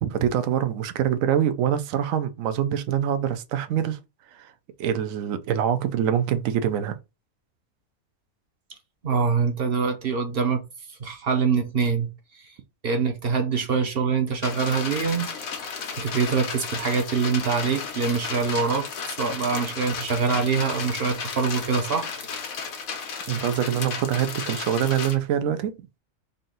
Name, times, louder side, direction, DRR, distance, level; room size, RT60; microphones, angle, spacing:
voice 1, 0.0-4.0 4.3-4.5 4.8-7.0 23.3-25.8, right 9 dB, 80° right, 1.0 m, -25 dB
voice 2, 9.0-10.6 11.0-12.1 12.8-15.3 16.0-22.0, right 5 dB, 50° right, 0.9 m, -24 dB
sound 1, 14.4-25.1, left 5 dB, 80° left, 1.4 m, -34 dB
4.0 x 2.6 x 3.8 m
omnidirectional pair, 1.4 m